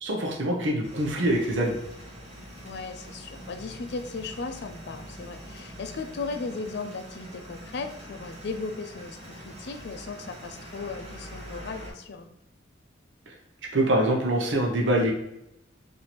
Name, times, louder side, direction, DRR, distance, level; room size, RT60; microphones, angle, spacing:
voice 1, 0.0-1.7 13.3-13.4 13.7-15.1, right 1 dB, 80° right, 0 dB, 0.7 m, -24 dB
sound 1, 0.8-11.9, equal, 35° right, 1.5 m, -44 dB
voice 2, 2.6-12.3, left 4 dB, 60° left, 7 dB, 0.4 m, -36 dB
4.2 x 2.6 x 3.0 m, 0.84 s
head